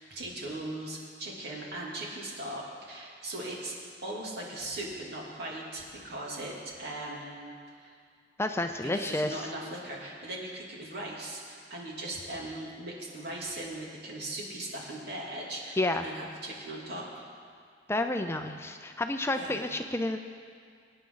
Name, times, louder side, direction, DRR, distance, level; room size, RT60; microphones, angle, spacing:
voice 1, 0.0-3.7 4.0-8.0 8.8-17.2 19.4-19.6, right 1 dB, 60° right, -3 dB, 2.8 m, -39 dB
voice 2, 8.4-9.4 15.8-16.0 17.9-20.2, left 2 dB, 15° left, 6 dB, 0.5 m, -30 dB
23.5 x 9.7 x 3.9 m, 2.1 s
head